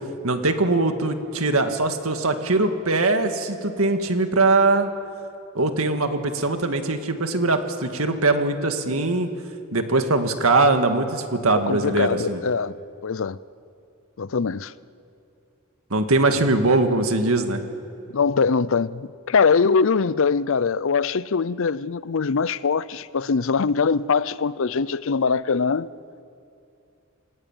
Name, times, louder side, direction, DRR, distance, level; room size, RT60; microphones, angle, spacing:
voice 1, 0.2-4.9 5.5-9.3 9.7-12.4 15.9-17.6, right 2 dB, 80° right, 1.9 m, -21 dB
voice 2, 11.5-12.8 13.0-13.4 14.2-14.7 18.1-25.9, left 5 dB, 65° left, 0.6 m, -22 dB
27.5 x 19.5 x 9.0 m
head